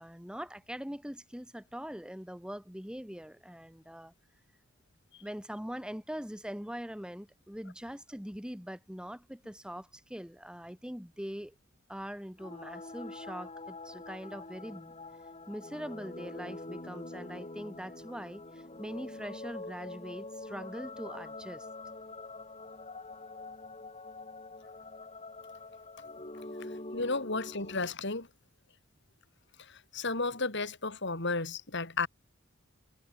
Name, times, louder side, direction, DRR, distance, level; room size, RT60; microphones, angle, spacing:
voice 1, 0.0-4.1 5.2-11.5 11.9-14.9 15.5-21.7, equal, 5° right, 3.8 m, -42 dB
sound 1, 12.4-27.9, left 2 dB, 30° left, 4.5 m, -45 dB
voice 2, 26.9-28.3 29.9-32.1, left 3 dB, 60° left, 5.4 m, -33 dB
head